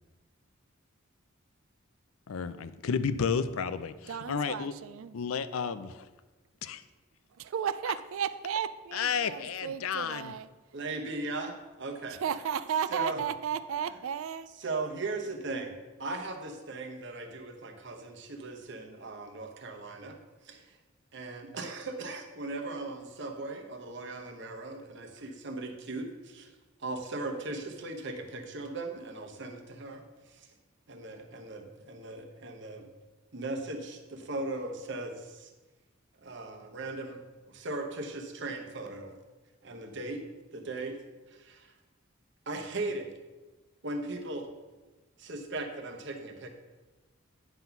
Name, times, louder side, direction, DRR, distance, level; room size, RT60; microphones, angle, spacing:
voice 1, 2.3-4.7 5.1-6.1 6.6-6.8 8.9-10.3, left 6 dB, 80° left, 13 dB, 0.5 m, -32 dB
voice 2, 4.1-5.2 7.4-10.5 12.2-14.5, right 8 dB, 70° right, 13 dB, 0.3 m, -34 dB
voice 3, 10.7-11.5 11.8-12.2 12.9-13.2 14.6-20.2 20.4-20.8 21.1-26.5 26.8-30.5 30.9-32.9 33.3-35.5 36.2-37.2 37.5-39.2 39.6-41.0 41.3-41.7 42.5-43.2 43.8-44.5 45.2-46.5, right 2 dB, 55° right, 4 dB, 1.0 m, -38 dB
9.2 x 4.0 x 5.7 m, 1.2 s
head